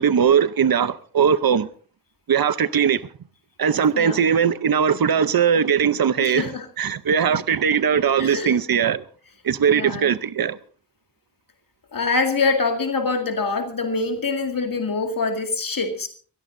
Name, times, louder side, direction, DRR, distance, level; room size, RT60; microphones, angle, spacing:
voice 1, 0.0-1.7 2.3-3.0 3.6-6.5 6.8-9.0 9.4-10.6, right 7 dB, 85° right, 0.7 m, -20 dB
voice 2, 6.2-6.7 8.2-8.6 9.7-10.1 11.9-16.1, left 3 dB, 70° left, 2.2 m, -24 dB
23.5 x 17.0 x 2.6 m
wide cardioid pair, 85°, 35 cm